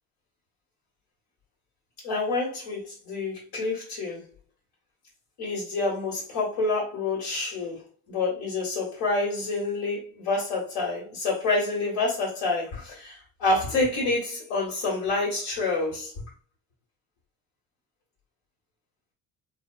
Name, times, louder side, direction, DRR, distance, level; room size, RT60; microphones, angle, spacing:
voice 1, 2.0-4.3 5.4-7.8 8.1-16.1, left 3 dB, 90° left, 1.6 m, -28 dB
4.0 x 2.3 x 2.3 m
cardioid pair, 105°, 37 cm